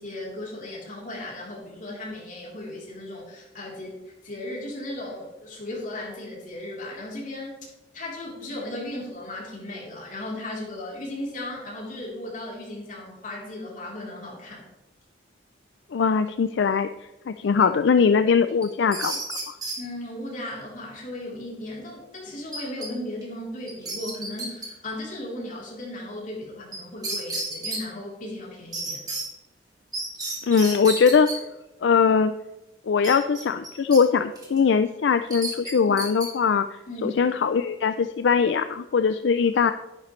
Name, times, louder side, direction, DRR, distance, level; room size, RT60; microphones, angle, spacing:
voice 1, 0.0-7.5 7.9-14.7 17.4-17.7 19.8-29.0 35.9-36.0 36.9-37.1, left 1 dB, 45° left, -4 dB, 3.5 m, -36 dB
voice 2, 15.9-16.9 17.3-19.2 19.5-19.6 30.5-31.3 31.8-32.3 32.9-36.7 37.0-39.7, left 6 dB, 70° left, 10 dB, 0.4 m, -21 dB
sound 1, 18.6-19.8 22.5-22.9 23.2-23.3 23.7-24.7 26.7-26.8 27.0-27.8 28.7-29.2 29.9-31.4 33.0-34.0 34.4-34.6 35.3-36.3, right 2 dB, 20° right, 2.3 m, -32 dB
10.5 x 10.0 x 3.2 m, 1.0 s
head